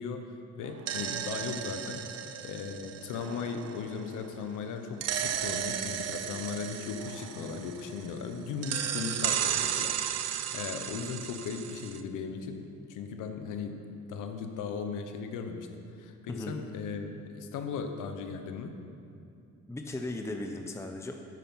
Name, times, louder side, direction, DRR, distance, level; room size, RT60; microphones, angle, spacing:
voice 1, 0.0-2.0 2.4-15.7 16.0-18.8, left 5 dB, 90° left, 6 dB, 1.0 m, -37 dB
sound 1, 0.6-4.3 5.0-8.2 8.6-12.0, right 9 dB, 55° right, 0.7 m, -34 dB
voice 2, 19.7-21.1, left 2 dB, 10° left, 4 dB, 0.7 m, -37 dB
9.7 x 8.8 x 5.5 m, 2.5 s
cardioid pair, 90°, 30 cm